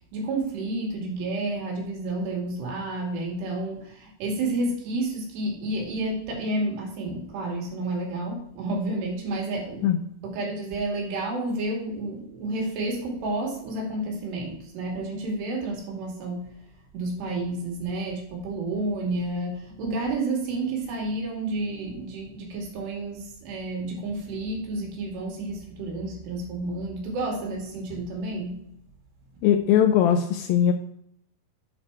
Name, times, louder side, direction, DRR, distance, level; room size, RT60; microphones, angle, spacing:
voice 1, 0.1-9.9 10.2-16.6 16.9-28.7, right 2 dB, 90° right, -1 dB, 4.3 m, -30 dB
voice 2, 29.4-30.7, left 9 dB, 80° left, 7 dB, 2.1 m, -20 dB
8.8 x 4.5 x 4.7 m, 0.74 s
omnidirectional pair, 4.7 m